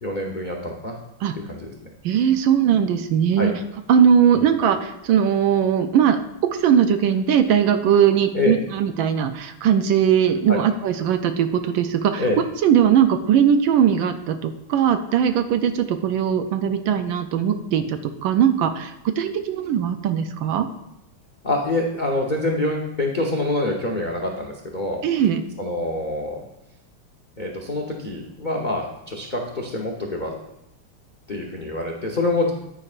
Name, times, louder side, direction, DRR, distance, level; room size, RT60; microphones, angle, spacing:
voice 1, 0.0-1.0 1.3-1.7 3.4-3.5 4.3-4.5 8.3-8.5 10.5-10.6 12.2-12.4 21.4-25.0 25.6-26.4 27.4-30.3 31.3-32.5, left 2 dB, 65° left, 1 dB, 0.4 m, -25 dB
voice 2, 2.0-3.5 3.9-6.2 6.6-12.2 12.6-20.7 25.0-25.4, right 8 dB, 75° right, 8 dB, 1.3 m, -19 dB
9.9 x 9.5 x 2.5 m, 0.84 s
omnidirectional pair, 2.4 m